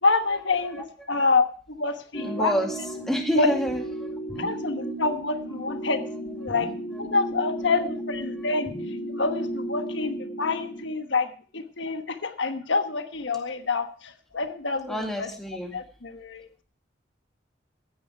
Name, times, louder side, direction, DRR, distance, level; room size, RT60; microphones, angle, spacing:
voice 1, 0.0-2.5 3.4-3.5 4.4-8.7 9.1-15.3 15.7-16.6, left 3 dB, 70° left, 7 dB, 1.3 m, -27 dB
voice 2, 0.7-1.3 2.2-4.5 6.1-6.2 8.4-8.5 14.9-15.8, equal, ahead, 2 dB, 2.1 m, -29 dB
sound 1, 2.1-10.8, right 1 dB, 25° left, 2.9 m, -34 dB
15.0 x 10.0 x 4.6 m, 0.41 s
head